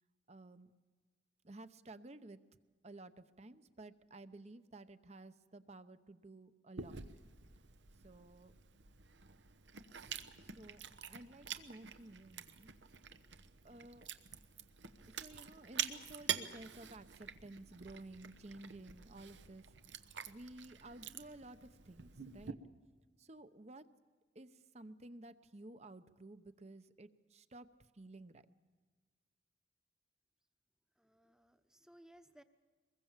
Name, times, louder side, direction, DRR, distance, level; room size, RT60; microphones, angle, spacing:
voice 1, 0.3-0.7 1.4-2.4 2.8-7.0 7.9-8.5 10.5-10.8 11.1-12.7 13.6-14.1 15.1-22.6 23.2-23.9 24.3-28.5, right 2 dB, 35° right, 12 dB, 0.9 m, -54 dB
Chewing mastication, 6.8-22.5, right 8 dB, 80° right, 1.1 m, -47 dB
voice 2, 31.0-32.4, right 1 dB, 5° right, 9 dB, 1.0 m, -62 dB
24.0 x 21.5 x 7.4 m, 1.4 s
head